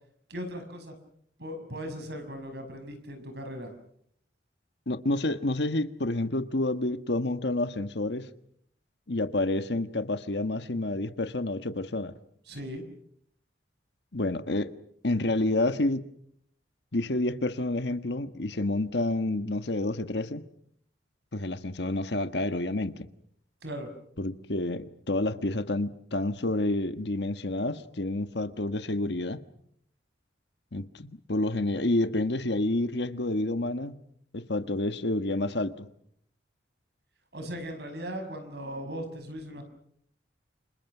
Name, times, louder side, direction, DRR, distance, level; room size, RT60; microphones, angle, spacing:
voice 1, 0.3-0.9 1.4-3.7 12.5-12.8 23.6-23.9 37.3-39.6, equal, 60° right, 6.1 m, -38 dB
voice 2, 4.9-8.3 9.1-12.1 14.1-14.7 15.0-16.0 16.9-20.5 21.3-23.1 24.2-29.4 30.7-34.0 34.3-35.9, left 2 dB, 65° left, 1.5 m, -29 dB
29.0 x 27.0 x 6.1 m
head